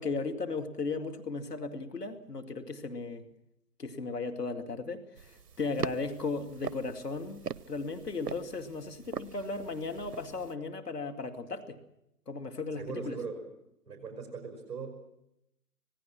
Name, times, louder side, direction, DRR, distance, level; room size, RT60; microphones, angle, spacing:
voice 1, 0.0-3.2 3.8-11.8 12.3-13.2, left 3 dB, 75° left, 6 dB, 2.6 m, -36 dB
sound 1, 5.2-10.5, right 6 dB, 75° right, 0.8 m, -42 dB
voice 2, 12.7-13.5 13.9-14.9, right 4 dB, 25° right, 3 dB, 4.9 m, -40 dB
26.5 x 18.5 x 6.1 m, 0.83 s
figure-of-eight pair, 155°, 48 cm